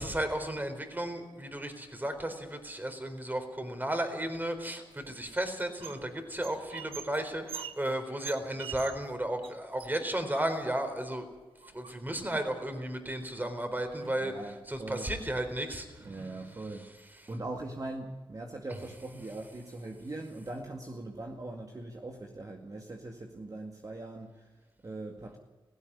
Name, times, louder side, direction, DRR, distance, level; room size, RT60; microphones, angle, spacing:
voice 1, 0.0-11.2 11.7-14.3 14.7-16.1, right 1 dB, 20° right, 7 dB, 4.2 m, -34 dB
sound 1, 4.9-6.1 6.3-9.1 9.4-9.5 9.8-10.9 11.6-12.3 13.4-13.5 13.8-14.3 14.8-15.0 15.4-15.5 16.0-16.8, right 7 dB, 85° right, 1.1 m, -46 dB
voice 2, 14.2-15.1 16.0-16.9 17.3-25.4, right 2 dB, 40° right, 2 dB, 2.1 m, -41 dB
17.5 x 16.0 x 9.8 m, 1.2 s
cardioid pair, 55°, 9 cm